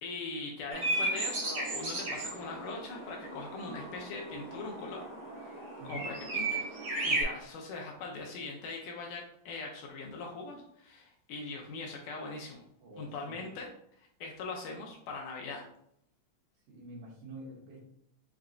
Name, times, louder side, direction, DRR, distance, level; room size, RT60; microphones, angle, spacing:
voice 1, 0.0-12.6 13.0-13.7 14.2-15.7, left 3 dB, 75° left, 0 dB, 2.1 m, -41 dB
sound 1, 0.7-7.2, right 2 dB, 55° right, 1.5 m, -35 dB
voice 2, 12.8-13.5 16.7-17.8, right 2 dB, 70° right, -9 dB, 2.4 m, -47 dB
5.8 x 2.2 x 3.7 m, 0.69 s
omnidirectional pair, 4.0 m